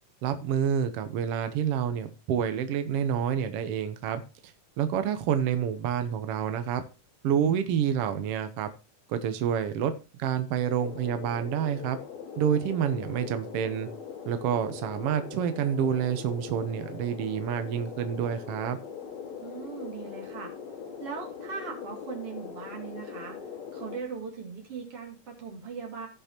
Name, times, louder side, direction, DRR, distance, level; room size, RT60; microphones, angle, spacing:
voice 1, 0.2-4.2 4.8-6.8 7.2-8.7 9.1-9.9 10.2-12.0 12.4-13.9 14.2-18.8, right 8 dB, 80° right, 9 dB, 1.3 m, -28 dB
sound 1, 10.8-24.0, left 6 dB, 65° left, 2.7 m, -41 dB
voice 2, 19.4-20.5 21.0-23.4 23.7-26.1, right 5 dB, 50° right, 1 dB, 3.1 m, -39 dB
17.0 x 5.7 x 2.9 m, 0.31 s
omnidirectional pair, 3.6 m